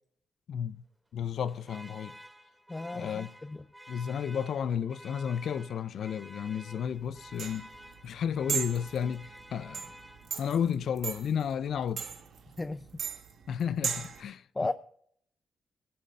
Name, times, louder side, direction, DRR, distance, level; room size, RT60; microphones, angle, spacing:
voice 1, 1.1-2.2 2.9-3.3 3.9-7.7 8.0-9.9 10.4-12.0 13.5-14.4, left 8 dB, 75° left, 0.5 m, -32 dB
Alarm, 1.2-10.7, equal, 5° right, 2.6 m, -51 dB
voice 2, 2.7-3.7 12.6-12.9 14.5-14.7, left 2 dB, 25° left, 0.6 m, -34 dB
sound 1, 6.8-14.2, right 7 dB, 75° right, 1.6 m, -38 dB
16.5 x 12.0 x 2.6 m
supercardioid pair, 60°, 0 cm